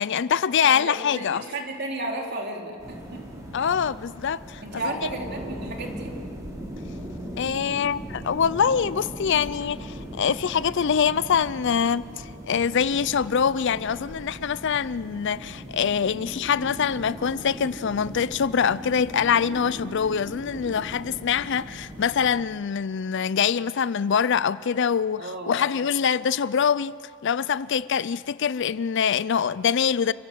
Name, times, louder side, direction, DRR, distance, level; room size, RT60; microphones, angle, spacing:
voice 1, 0.0-1.4 3.5-5.2 7.4-27.0 27.2-30.1, left 7 dB, 55° left, 0.4 m, -24 dB
voice 2, 0.6-3.2 4.6-6.1 25.2-25.7, right 2 dB, 50° right, 3.3 m, -33 dB
sound 1, 2.8-22.4, equal, 15° right, 4.0 m, -39 dB
29.5 x 16.0 x 7.7 m
head